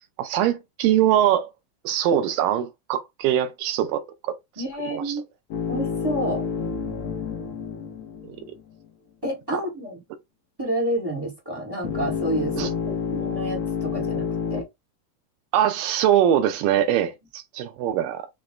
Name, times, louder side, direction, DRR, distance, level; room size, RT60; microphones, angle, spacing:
voice 1, 0.2-1.5 1.8-4.4 5.1-5.2 8.2-8.4 9.5-9.6 12.6-12.7 15.5-18.3, right 10 dB, 85° right, 2.3 m, -22 dB
voice 2, 4.6-5.2 5.7-6.5 9.2-10.0 10.6-14.7, right 1 dB, 25° right, 0.5 m, -29 dB
sound 1, 5.5-8.9 11.8-14.6, left 6 dB, 75° left, 1.2 m, -29 dB
5.8 x 2.1 x 3.7 m
omnidirectional pair, 3.9 m